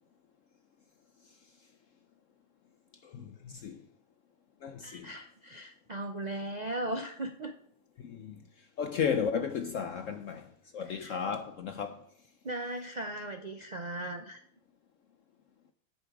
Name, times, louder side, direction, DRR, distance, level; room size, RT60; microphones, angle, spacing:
voice 1, 3.0-3.8 4.6-5.1 8.0-8.4 8.8-10.5 10.7-12.0, left 7 dB, 70° left, 0.8 m, -34 dB
voice 2, 4.8-7.5 10.9-11.2 12.4-14.4, right 1 dB, 60° right, 0.4 m, -37 dB
10.5 x 7.6 x 4.8 m
omnidirectional pair, 2.0 m